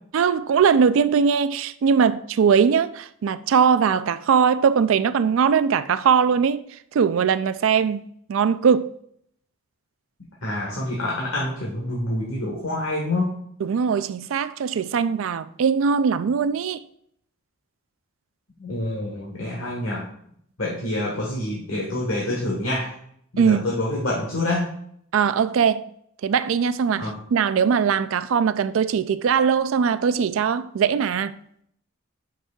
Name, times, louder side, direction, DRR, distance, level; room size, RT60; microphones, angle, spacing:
voice 1, 0.1-6.6 6.9-8.9 13.6-16.8 23.4-23.7 25.1-25.9 26.2-31.4, right 6 dB, 65° right, 0.3 m, -20 dB
voice 2, 10.4-13.3 18.6-20.0 20.6-22.9 23.3-24.7 27.0-27.1, left 1 dB, 65° left, 1.5 m, -27 dB
8.1 x 6.0 x 2.3 m
head